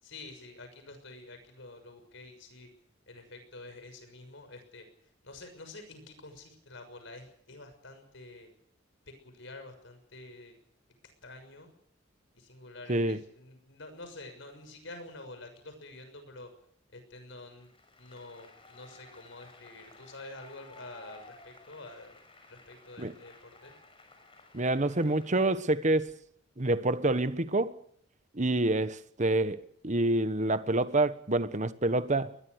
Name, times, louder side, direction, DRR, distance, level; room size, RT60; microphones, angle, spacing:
voice 1, 0.0-2.7 3.1-4.9 5.2-8.5 9.2-10.6 11.2-11.7 12.3-16.5 16.9-17.7 18.0-22.2 22.5-23.7, left 2 dB, 65° left, 6.4 m, -48 dB
Applause, 17.6-25.5, left 3 dB, 30° left, 6.1 m, -55 dB
voice 2, 24.5-26.1 26.6-27.8 28.3-32.3, right 2 dB, 40° right, 1.3 m, -27 dB
22.0 x 21.0 x 6.6 m
head